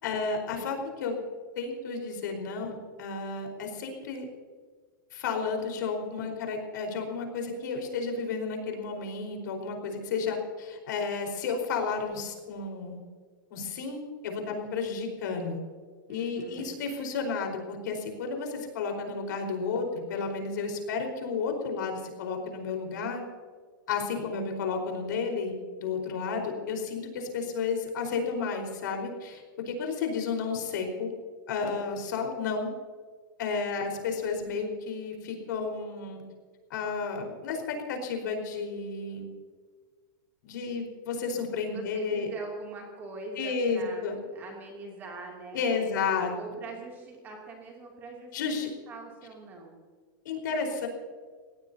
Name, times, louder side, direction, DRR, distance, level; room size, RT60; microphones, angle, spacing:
voice 1, 0.0-1.2 1.6-4.3 5.1-13.0 13.5-15.6 16.1-23.2 23.9-31.1 31.5-32.7 33.4-36.2 36.7-39.3 40.4-42.3 43.4-44.2 45.5-46.3 48.3-48.7 50.2-50.9, left 5 dB, 60° left, 3 dB, 4.6 m, -32 dB
voice 2, 16.1-16.7 24.1-24.5 41.7-48.4 48.9-49.8, right 3 dB, 15° right, -1 dB, 2.8 m, -43 dB
22.5 x 17.5 x 2.8 m, 1.5 s
supercardioid pair, 180°, 11 cm